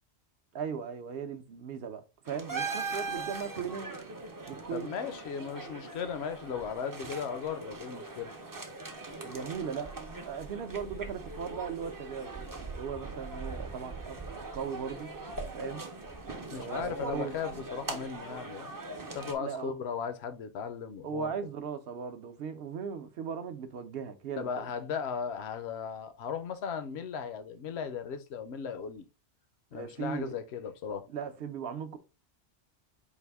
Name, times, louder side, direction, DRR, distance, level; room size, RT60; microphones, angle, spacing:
voice 1, 0.5-3.9 4.5-4.9 9.2-9.9 10.2-15.1 15.5-15.9 16.5-17.4 19.4-19.7 21.0-24.7 29.7-30.4 31.1-32.0, right 7 dB, 65° right, 0.8 m, -38 dB
sound 1, 2.2-19.3, right 3 dB, 30° right, 0.4 m, -41 dB
voice 2, 4.7-8.3 16.5-18.7 19.1-21.3 24.4-29.0 29.7-31.1, left 7 dB, 70° left, 0.9 m, -37 dB
4.7 x 2.5 x 3.4 m
omnidirectional pair, 1.2 m